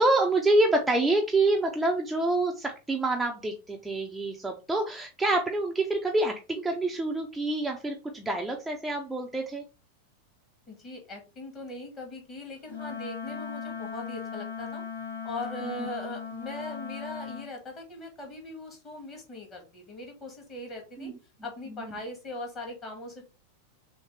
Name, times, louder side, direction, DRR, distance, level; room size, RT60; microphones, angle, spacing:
voice 1, 0.0-9.6 15.6-15.9 21.0-21.1 21.8-21.9, right 2 dB, 5° right, 1 dB, 0.6 m, -27 dB
voice 2, 10.7-14.8 15.2-21.1 21.4-23.2, left 1 dB, 25° left, 1 dB, 1.9 m, -40 dB
Wind instrument woodwind instrument, 12.7-17.5, left 6 dB, 70° left, 0.8 m, -38 dB
6.2 x 2.1 x 3.4 m, 0.31 s
figure-of-eight pair, 90°, 0 cm